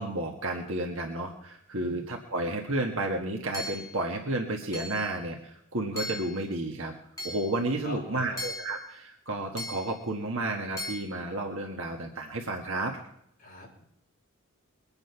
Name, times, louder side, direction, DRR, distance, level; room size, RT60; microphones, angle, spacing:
voice 1, 0.0-6.9 7.2-13.0, right 2 dB, 70° right, 1 dB, 1.6 m, -32 dB
voice 2, 1.7-2.1 7.8-8.4 13.4-13.9, left 2 dB, 40° left, -3 dB, 5.9 m, -44 dB
Hammer / Chink clink, 3.5-4.0 4.7-5.1 6.0-6.4 7.2-7.5 8.4-8.8 9.6-10.0 10.8-11.0, left 1 dB, 15° left, 2.7 m, -37 dB
22.0 x 8.9 x 5.8 m, 0.75 s
head